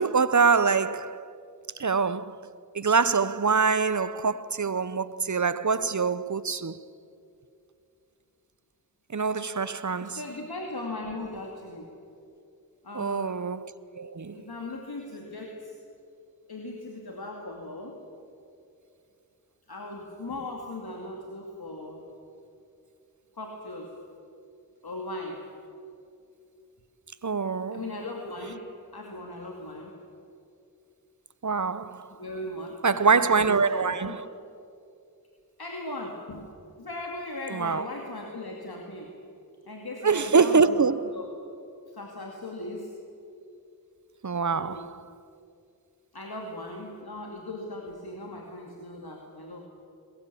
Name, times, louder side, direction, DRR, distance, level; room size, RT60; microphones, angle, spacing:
voice 1, 0.0-1.3 1.8-2.5 2.7-6.8 9.1-10.2 12.9-14.5 27.2-27.8 31.4-32.1 32.8-34.2 37.5-37.9 40.0-41.1 44.2-45.0, right 5 dB, 50° right, 0.8 m, -25 dB
voice 2, 10.0-11.9 12.8-13.4 14.3-15.7 16.5-18.0 19.7-22.0 23.3-23.9 24.8-25.4 27.7-28.7 28.9-29.9 32.2-34.1 35.6-36.5 36.8-39.1 39.7-40.8 41.0-41.3 41.9-42.9 44.5-44.9 46.1-49.7, left 2 dB, 85° left, 2.4 m, -38 dB
22.5 x 20.0 x 8.5 m
wide cardioid pair, 50°, 37 cm